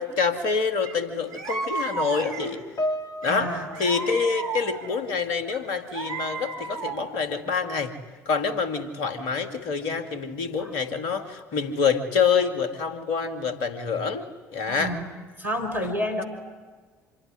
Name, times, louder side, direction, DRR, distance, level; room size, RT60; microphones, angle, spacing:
voice 1, 0.0-2.6 3.2-8.0 8.3-14.2 14.5-14.9, left 5 dB, 60° left, 8 dB, 2.3 m, -26 dB
sound 1, 0.8-1.0 1.3-2.7 3.2-5.0 5.5-7.3, right 4 dB, 45° right, 4.1 m, -33 dB
Piano, 2.8-5.4 5.7-6.0 6.8-6.9, left 1 dB, 35° left, 1.8 m, -35 dB
voice 2, 3.3-3.7 10.6-10.7 14.7-15.1 15.4-16.2, equal, 85° right, -1 dB, 3.1 m, -29 dB
26.0 x 22.5 x 9.9 m, 1.4 s
figure-of-eight pair, 60°, 9 cm